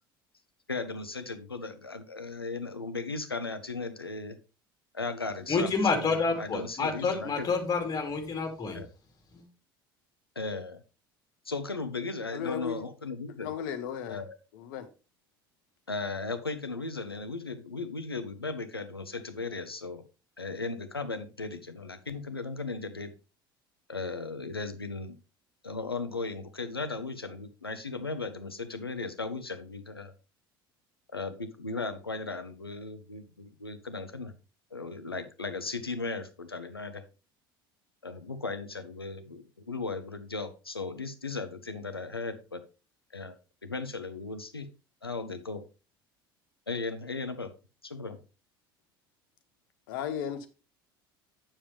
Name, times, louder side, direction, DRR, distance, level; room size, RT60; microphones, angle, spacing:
voice 1, 0.7-4.4 4.9-7.5 8.7-8.9 10.4-10.8 11.4-13.5 14.1-14.4 15.9-20.0 20.4-23.1 23.9-25.2 25.6-30.1 31.1-34.3 34.7-37.0 38.0-42.6 43.1-43.4 43.6-44.7 45.0-45.6 46.7-47.5 47.8-48.2, left 3 dB, 90° left, 0.9 m, -36 dB
voice 2, 5.5-8.8 9.3-9.4, left 4 dB, 30° left, 2.6 m, -28 dB
voice 3, 12.3-12.8 13.3-14.2 14.5-14.9 49.9-50.5, left 8 dB, 65° left, 1.1 m, -35 dB
8.6 x 7.3 x 3.4 m
figure-of-eight pair, 65°, 12 cm